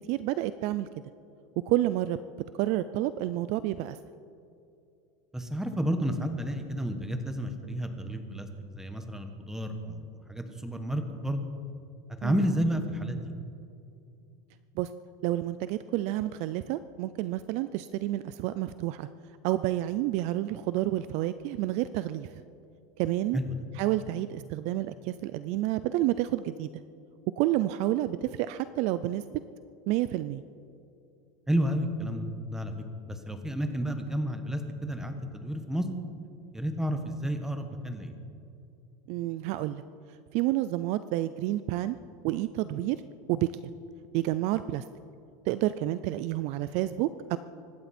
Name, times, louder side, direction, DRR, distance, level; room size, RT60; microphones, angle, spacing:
voice 1, 0.1-0.9 1.7-2.2 2.6-4.0 12.2-12.5 14.8-14.9 15.2-19.1 19.4-22.4 23.0-23.4 23.8-26.7 27.4-29.4 29.9-30.4 39.1-39.8 40.3-42.0 42.2-43.0 43.3-43.5 44.1-44.8 45.5-47.4, right 15 dB, 45° right, 14 dB, 0.4 m, -29 dB
voice 2, 5.3-11.4 12.2-13.2 23.3-23.6 31.5-32.7 33.1-35.9 36.5-38.1, equal, 5° right, 6 dB, 1.2 m, -31 dB
24.5 x 12.5 x 4.3 m, 2.6 s
supercardioid pair, 160°, 16 cm